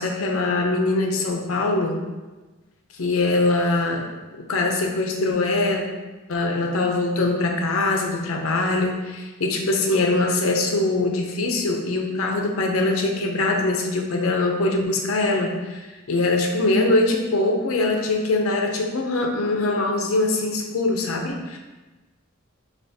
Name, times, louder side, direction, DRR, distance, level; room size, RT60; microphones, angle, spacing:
voice 1, 0.0-2.0 3.0-5.8 6.3-15.8 16.1-21.6, left 2 dB, 70° left, 2 dB, 0.6 m, -22 dB
5.5 x 2.4 x 2.7 m, 1.2 s
head